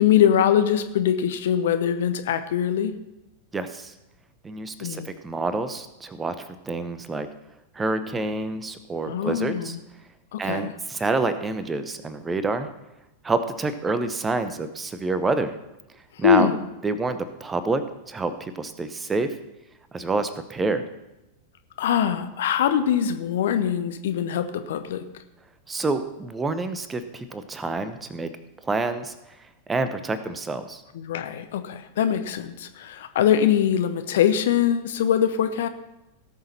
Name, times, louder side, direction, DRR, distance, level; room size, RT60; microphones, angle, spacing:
voice 1, 0.0-2.9 4.8-5.1 9.1-9.8 10.3-10.7 16.2-16.6 21.8-25.0 30.9-35.7, left 9 dB, 60° left, 9 dB, 0.8 m, -22 dB
voice 2, 3.5-3.9 4.4-6.3 6.6-7.3 7.7-9.8 10.4-12.7 13.2-15.5 16.2-16.5 16.8-17.8 18.1-19.3 19.9-20.8 25.7-28.3 28.6-29.1 29.7-30.8, right 3 dB, 15° right, 11 dB, 0.8 m, -27 dB
17.5 x 6.5 x 4.2 m, 0.95 s
figure-of-eight pair, 90°, 0 cm